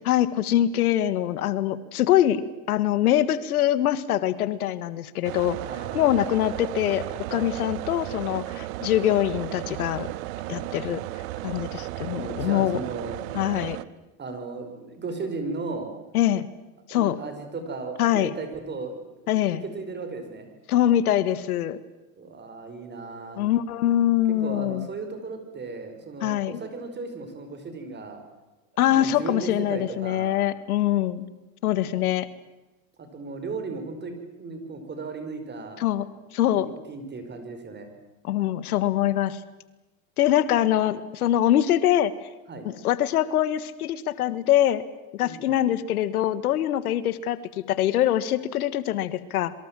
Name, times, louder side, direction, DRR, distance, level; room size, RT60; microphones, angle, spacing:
voice 1, 0.1-2.4 2.7-5.6 5.9-7.0 7.3-10.1 10.5-11.0 11.4-12.8 13.3-13.8 16.1-16.4 16.9-17.2 18.0-18.3 19.3-19.6 20.7-21.8 23.4-24.9 26.2-26.6 28.8-31.3 31.6-32.3 35.8-36.0 36.3-36.7 38.2-39.4 40.2-42.1 42.7-44.8 45.1-49.5, left 12 dB, 85° left, 15 dB, 1.7 m, -23 dB
sound 1, 5.2-13.8, right 17 dB, 65° right, 1.1 m, -34 dB
voice 2, 5.7-6.2 7.3-7.5 10.5-10.6 12.2-13.2 14.2-15.9 16.9-19.0 19.3-20.5 22.2-23.5 24.4-28.2 28.7-30.5 31.8-31.9 33.0-35.8 36.5-37.9 42.5-42.7 45.2-45.6, right 3 dB, 25° right, 6 dB, 5.3 m, -36 dB
26.5 x 24.0 x 7.6 m, 1.1 s
supercardioid pair, 115°, 43 cm